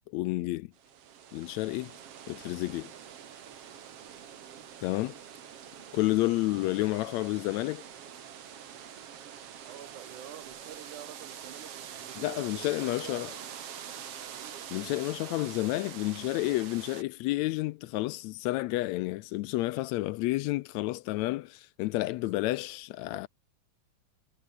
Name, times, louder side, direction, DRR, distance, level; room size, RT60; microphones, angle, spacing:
voice 1, 0.1-0.7 1.3-1.9 2.3-2.9 4.8-5.2 5.9-7.8 12.2-13.3 14.7-23.3, left 19 dB, 80° left, 1.7 m, -30 dB
sound 1, 0.8-17.0, right 9 dB, 55° right, 2.6 m, -45 dB
voice 2, 9.7-13.3 14.3-15.6 22.4-22.8 23.1-23.3, right 10 dB, 90° right, 3.3 m, -49 dB
omnidirectional pair, 3.4 m